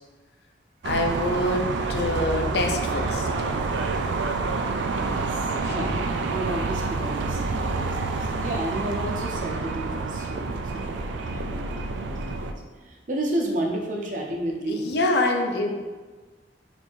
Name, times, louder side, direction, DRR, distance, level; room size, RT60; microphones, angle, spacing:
voice 1, 0.8-3.3 5.5-5.7 14.7-15.8, left 2 dB, 70° left, 3 dB, 0.6 m, -26 dB
sound 1, 0.8-12.5, right 3 dB, 90° right, 0.4 m, -28 dB
voice 2, 4.9-6.0 6.3-11.6 12.0-14.8, right 1 dB, 45° right, 1 dB, 0.6 m, -32 dB
4.2 x 2.7 x 4.5 m, 1.3 s
head